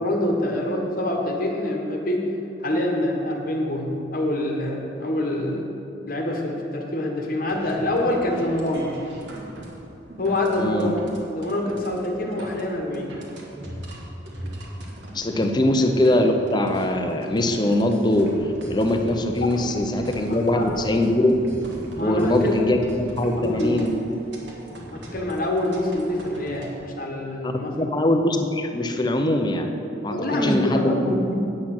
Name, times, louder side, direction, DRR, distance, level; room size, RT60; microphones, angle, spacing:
voice 1, 0.0-2.3 2.6-5.7 6.0-8.9 10.2-11.0 11.3-13.1 20.3-20.8 21.9-22.5 23.4-23.8 24.9-27.9 30.1-31.4, left 1 dB, 45° left, 0 dB, 1.2 m, -25 dB
sound 1, 7.5-26.7, equal, 65° right, 1.7 m, -39 dB
voice 2, 10.6-10.9 15.1-18.3 18.7-21.3 22.0-23.9 27.4-29.7 30.0-30.2 30.4-31.1, left 1 dB, 20° left, 5 dB, 0.6 m, -22 dB
8.7 x 8.4 x 6.0 m, 2.8 s
head